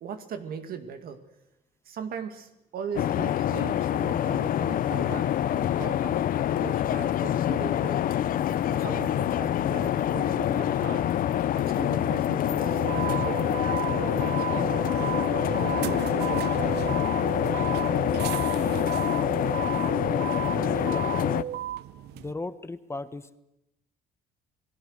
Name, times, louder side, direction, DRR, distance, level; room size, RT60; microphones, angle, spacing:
voice 1, 0.0-1.2 1.9-6.3 6.6-8.0 8.7-11.1 11.6-13.4 13.7-17.1, right 7 dB, 60° right, 8 dB, 2.1 m, -39 dB
sound 1, 3.0-21.4, left 11 dB, 55° left, 0.7 m, -26 dB
sound 2, 4.5-22.3, right 11 dB, 80° right, 0.7 m, -35 dB
voice 2, 20.5-21.1 22.1-23.4, left 3 dB, 15° left, 13 dB, 1.1 m, -36 dB
28.5 x 19.0 x 6.6 m, 0.88 s
cardioid pair, 110°, 17 cm